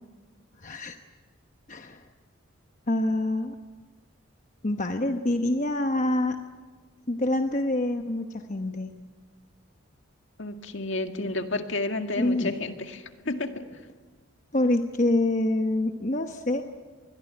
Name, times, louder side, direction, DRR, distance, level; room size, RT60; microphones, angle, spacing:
voice 1, 0.6-1.0 1.7-2.0 2.9-3.6 4.6-6.4 7.1-9.0 12.2-12.5 14.5-16.6, left 1 dB, 35° left, 5 dB, 1.0 m, -26 dB
voice 2, 10.4-13.7, left 2 dB, 65° left, 6 dB, 2.0 m, -31 dB
25.5 x 21.5 x 9.1 m, 1.4 s
head